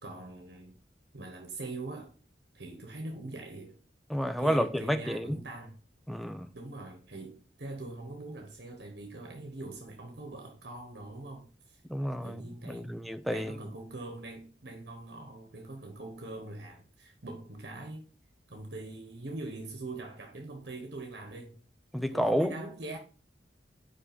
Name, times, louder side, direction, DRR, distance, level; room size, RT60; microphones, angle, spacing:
voice 1, 0.0-0.7 1.1-2.1 2.5-3.8 4.4-5.8 6.5-11.8 12.2-18.1 18.5-21.6 22.1-23.0, right 2 dB, 65° right, 1.2 m, -43 dB
voice 2, 4.1-5.4 6.1-6.5 11.9-13.6 21.9-22.5, equal, ahead, 0.4 m, -30 dB
5.2 x 4.9 x 5.1 m
head